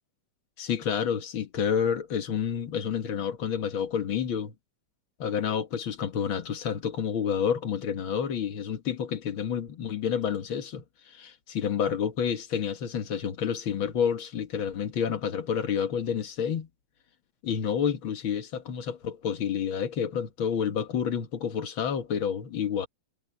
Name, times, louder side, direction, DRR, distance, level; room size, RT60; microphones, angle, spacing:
voice 1, 0.6-4.5 5.2-16.7 17.4-22.9, left 7 dB, 50° left, 1.8 m, -29 dB
omnidirectional pair, 3.7 m